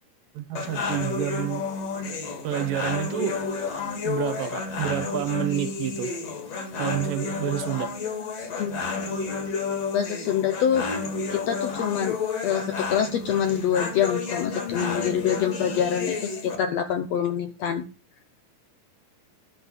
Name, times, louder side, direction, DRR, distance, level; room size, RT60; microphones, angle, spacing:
voice 1, 0.3-1.7 2.4-3.4 4.0-6.1 6.8-7.9, right 13 dB, 80° right, 2.7 m, -29 dB
sound 1, 0.6-16.6, left 4 dB, 50° left, 3.0 m, -31 dB
voice 2, 9.9-10.9 11.3-12.2 12.4-17.9, left 9 dB, 80° left, 1.5 m, -25 dB
11.0 x 5.5 x 8.5 m
omnidirectional pair, 4.0 m